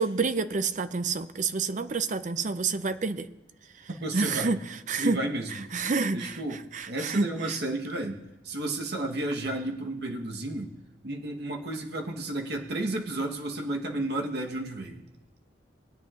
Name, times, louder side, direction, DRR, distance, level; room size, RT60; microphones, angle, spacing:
voice 1, 0.0-3.3 4.1-4.6 4.9-5.2 5.7-6.4 6.7-7.6, right 4 dB, 45° right, 0.5 m, -28 dB
voice 2, 4.0-4.6 5.0-5.7 6.1-10.7 11.0-15.0, right 2 dB, 60° right, 1.2 m, -32 dB
21.0 x 9.4 x 2.5 m
head